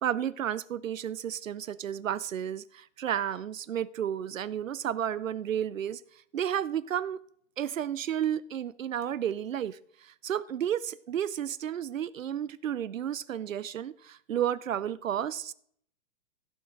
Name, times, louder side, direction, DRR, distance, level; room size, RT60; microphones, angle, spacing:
voice 1, 0.0-6.0 6.3-7.2 7.6-15.5, right 10 dB, 90° right, 0.6 m, -32 dB
15.5 x 6.1 x 3.8 m
hypercardioid pair, 110°, 38 cm